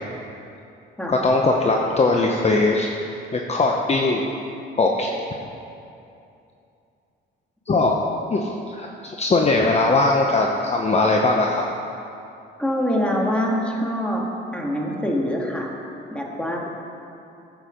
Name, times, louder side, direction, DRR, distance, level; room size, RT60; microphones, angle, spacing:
voice 1, 1.1-2.9 3.3-4.3 4.8-5.1 7.7-8.0 8.3-11.6, left 3 dB, 35° left, 1 dB, 0.9 m, -20 dB
voice 2, 12.6-14.3 14.5-15.7 16.1-16.7, equal, 5° left, -1 dB, 2.0 m, -24 dB
12.5 x 8.2 x 5.2 m, 2.7 s
cardioid pair, 90°, 20 cm